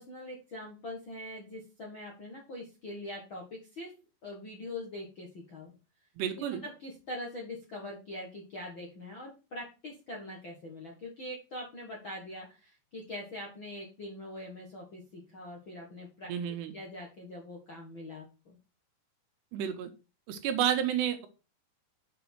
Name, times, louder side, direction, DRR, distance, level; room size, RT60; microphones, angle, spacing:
voice 1, 0.0-3.9 4.2-5.7 6.5-16.3 16.7-18.6, left 1 dB, 60° left, -1 dB, 1.2 m, -43 dB
voice 2, 6.2-6.6 16.3-16.7 19.5-19.9 20.3-21.3, right 9 dB, 80° right, 7 dB, 3.1 m, -30 dB
7.2 x 6.3 x 4.5 m, 0.31 s
omnidirectional pair, 4.9 m